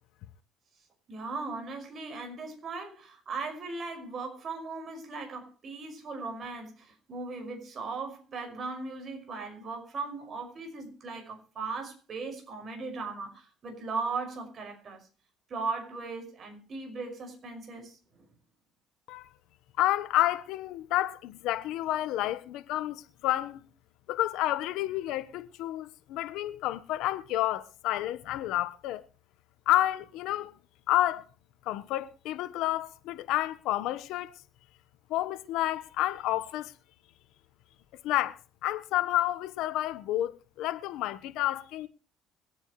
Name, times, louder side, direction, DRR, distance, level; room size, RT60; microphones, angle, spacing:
voice 1, 1.1-15.1 15.5-18.3, right 4 dB, 40° right, 5.7 m, -38 dB
voice 2, 19.8-23.6 24.1-29.0 29.7-30.5 30.9-31.2 31.6-34.4 35.1-36.7 38.0-41.9, left 14 dB, 75° left, 1.2 m, -30 dB
23.5 x 9.0 x 3.2 m
cardioid pair, 95°, 0 cm